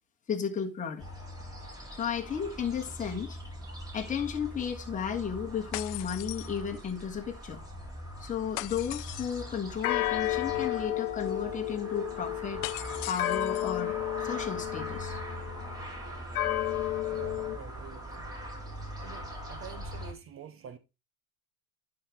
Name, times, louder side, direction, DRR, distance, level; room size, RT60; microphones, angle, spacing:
voice 1, 0.3-1.0 1.9-3.4 3.9-7.6 8.2-12.6 13.1-15.2, left 7 dB, 20° left, 1.5 m, -34 dB
sound 1, 1.0-20.1, equal, 10° right, 3.3 m, -42 dB
sound 2, 5.7-7.0 8.6-9.6 12.6-13.8, left 20 dB, 45° left, 0.5 m, -40 dB
sound 3, 9.8-15.5 16.3-17.6, left 15 dB, 85° left, 1.0 m, -32 dB
voice 2, 17.1-18.3 19.0-20.8, right 8 dB, 30° right, 0.8 m, -47 dB
11.0 x 4.0 x 4.3 m
hypercardioid pair, 105°, 42 cm